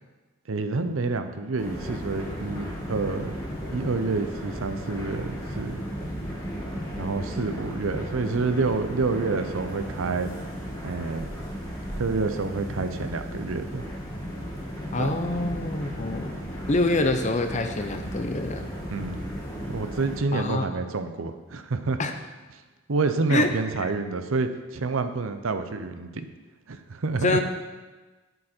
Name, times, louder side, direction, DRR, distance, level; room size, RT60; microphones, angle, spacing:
voice 1, 0.5-3.4 3.7-5.8 7.0-10.3 10.8-11.3 12.0-13.8 15.0-15.1 18.9-19.3 19.6-22.0 22.9-26.3 26.7-27.4, right 3 dB, 85° right, 9 dB, 0.7 m, -28 dB
sound 1, 1.6-20.2, equal, 20° left, 2.0 m, -35 dB
voice 2, 14.9-16.3 16.7-18.7 20.3-20.8 22.0-22.1 23.3-23.5 23.8-23.9 27.2-27.4, left 2 dB, 35° left, 6 dB, 0.7 m, -26 dB
7.9 x 7.7 x 4.4 m, 1.2 s
head